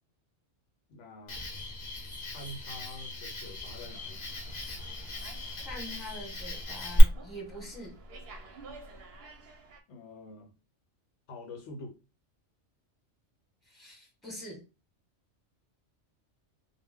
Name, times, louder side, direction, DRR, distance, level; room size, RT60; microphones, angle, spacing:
voice 1, 0.9-1.5 2.3-4.2 9.9-10.6 11.3-12.0, left 1 dB, 75° left, 0.9 m, -46 dB
Cricket, 1.3-7.0, left 1 dB, 45° left, 0.7 m, -36 dB
Slam, 3.8-9.8, right 1 dB, 60° right, 0.7 m, -48 dB
voice 2, 5.6-8.0 13.6-14.6, left 1 dB, ahead, 1.0 m, -44 dB
2.2 x 2.1 x 3.5 m
omnidirectional pair, 1.3 m